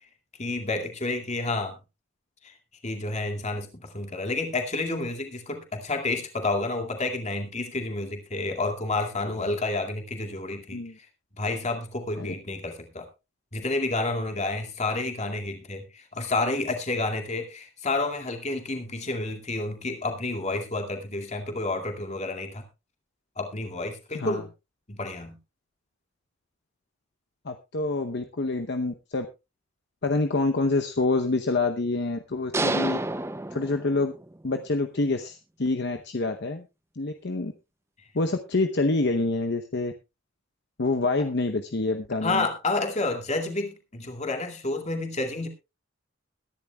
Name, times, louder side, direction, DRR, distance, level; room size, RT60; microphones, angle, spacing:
voice 1, 0.4-1.8 2.8-10.8 11.4-13.1 13.5-22.6 23.4-24.5 24.9-25.4 42.2-45.5, left 2 dB, 35° left, 4 dB, 2.3 m, -30 dB
voice 2, 27.4-29.3 30.0-33.0 33.5-34.1 34.4-36.6 37.0-37.5 38.1-39.9 40.8-42.5, left 3 dB, 55° left, 6 dB, 0.8 m, -27 dB
sound 1, 32.5-34.4, right 2 dB, 15° right, 0.5 m, -29 dB
21.5 x 10.5 x 2.3 m, 0.26 s
head